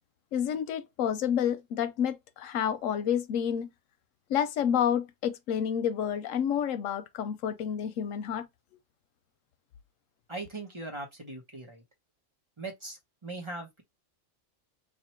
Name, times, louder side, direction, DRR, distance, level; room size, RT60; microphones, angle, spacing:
voice 1, 0.3-3.7 4.3-8.5, left 9 dB, 90° left, 1.0 m, -29 dB
voice 2, 10.3-11.8 12.6-13.8, right 2 dB, 25° right, 1.0 m, -40 dB
3.0 x 2.6 x 4.3 m
omnidirectional pair, 1.3 m